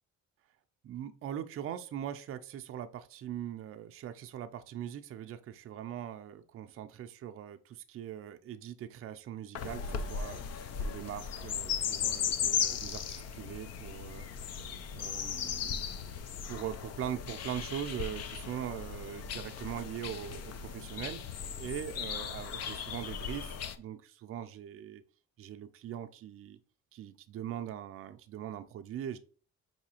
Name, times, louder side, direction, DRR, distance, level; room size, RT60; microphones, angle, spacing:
voice 1, 0.8-10.4 10.8-14.3 14.9-21.3 21.6-25.0 25.4-26.6 26.9-29.2, right 10 dB, 50° right, 8 dB, 0.4 m, -41 dB
sound 1, 9.5-23.8, left 7 dB, 55° left, 0.5 m, -37 dB
4.8 x 2.7 x 2.8 m, 0.40 s
cardioid pair, 90°, 30 cm